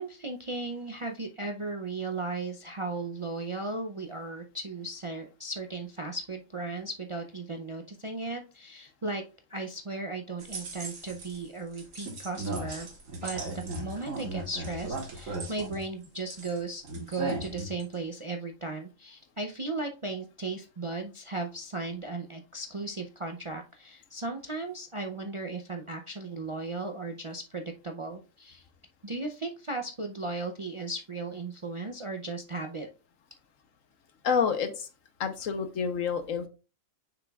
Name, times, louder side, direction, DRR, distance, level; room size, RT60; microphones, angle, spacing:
voice 1, 0.0-9.2 9.5-12.9 13.2-28.6 29.0-32.9, right 3 dB, 40° right, 3 dB, 0.4 m, -36 dB
sound 1, 10.4-11.4 11.7-16.6 16.8-17.9, right 2 dB, 80° right, 2.0 m, -37 dB
voice 2, 34.2-34.9 35.2-36.5, left 6 dB, 80° left, 8 dB, 1.3 m, -28 dB
6.7 x 5.9 x 2.3 m, 0.33 s
omnidirectional pair, 1.3 m